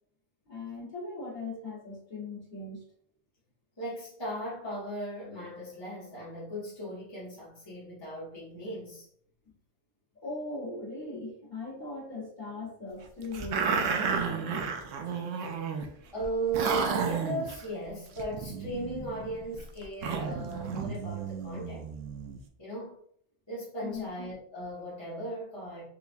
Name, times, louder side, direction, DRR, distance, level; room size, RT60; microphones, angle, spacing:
voice 1, 0.5-2.8 10.1-13.8 15.3-16.0 23.8-24.1, left 2 dB, 40° left, -6 dB, 1.6 m, -39 dB
voice 2, 3.8-9.1 16.1-21.9 22.6-23.0 23.5-25.8, right 1 dB, 25° left, -8 dB, 1.0 m, -37 dB
sound 1, 13.3-15.9 16.2-16.3 16.5-17.6 18.2-22.4, right 6 dB, 85° right, 0.9 m, -32 dB
4.6 x 2.3 x 2.5 m, 0.65 s
omnidirectional pair, 1.2 m